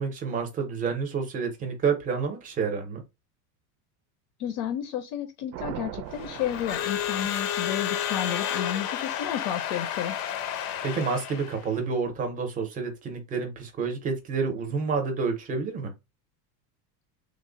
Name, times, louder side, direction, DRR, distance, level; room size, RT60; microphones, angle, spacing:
voice 1, 0.0-3.0 10.8-15.9, right 5 dB, 20° right, 0.6 m, -29 dB
voice 2, 4.4-10.2, left 10 dB, 55° left, 0.6 m, -32 dB
sound 1, 5.5-7.8, right 12 dB, 75° right, 0.6 m, -40 dB
Crowd / Alarm, 6.1-11.7, left 10 dB, 85° left, 0.8 m, -31 dB
3.2 x 2.1 x 3.8 m
cardioid pair, 170°, 46 cm